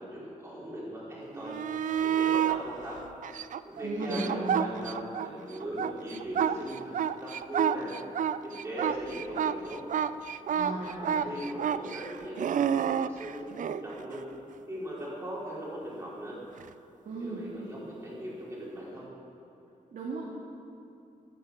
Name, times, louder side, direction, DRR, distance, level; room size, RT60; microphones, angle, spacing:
voice 1, 0.0-3.0 3.6-8.0 8.4-9.8 10.7-14.2 14.7-16.3 17.2-19.1, right 1 dB, 20° right, -8 dB, 4.2 m, -39 dB
sound 1, 1.4-2.6 3.2-5.3 5.6-13.8 16.6-16.7, right 9 dB, 65° right, 0.4 m, -29 dB
voice 2, 3.8-4.7 10.5-11.3 17.0-17.5 19.9-20.2, right 2 dB, 80° right, -4 dB, 2.1 m, -35 dB
15.0 x 10.5 x 6.4 m, 2.7 s
wide cardioid pair, 160°, 14 cm